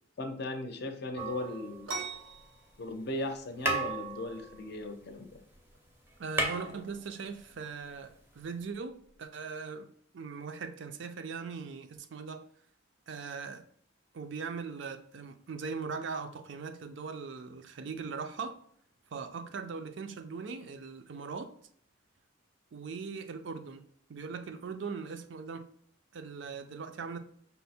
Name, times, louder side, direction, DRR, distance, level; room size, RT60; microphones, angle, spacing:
voice 1, 0.2-1.9 2.8-5.3, left 2 dB, 50° left, 0.6 m, -37 dB
sound 1, 1.2-2.3 3.2-3.3 3.6-5.5 5.8-5.9 6.1-7.5 8.6-8.7, right 2 dB, 10° right, 0.5 m, -35 dB
sound 2, 1.9-9.3, right 4 dB, 85° right, 0.8 m, -46 dB
voice 2, 6.2-9.9 10.1-12.4 13.1-13.6 14.1-18.6 19.1-21.5 22.7-23.8 24.1-25.7 26.1-27.2, right 5 dB, 60° right, 0.4 m, -40 dB
5.4 x 2.1 x 4.2 m
head